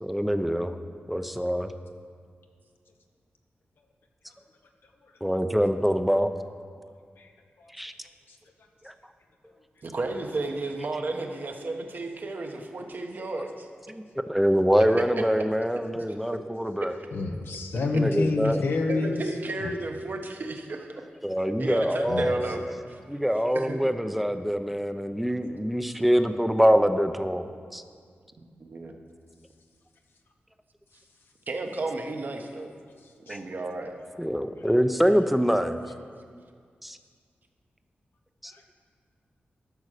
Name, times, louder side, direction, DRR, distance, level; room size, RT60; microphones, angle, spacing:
voice 1, 0.0-0.8 1.1-1.7 5.2-6.3 7.7-7.9 8.8-8.9 13.9-14.0 14.3-16.9 18.0-18.6 21.2-22.6 23.1-27.8 33.3-33.4 34.2-35.8 36.8-37.0 38.4-38.5, equal, ahead, 8 dB, 0.6 m, -24 dB
voice 2, 9.8-13.7 15.2-15.3 18.9-21.0 21.6-22.6 22.9-23.0 23.5-23.8 28.4-28.9 31.5-32.7 33.2-33.9, right 2 dB, 55° right, 4 dB, 1.2 m, -33 dB
voice 3, 17.1-19.2 19.6-19.7 22.1-22.3 33.3-33.4 38.5-38.7, left 3 dB, 80° left, 2 dB, 0.9 m, -28 dB
12.5 x 6.2 x 6.6 m, 2.1 s
cardioid pair, 75°, 4 cm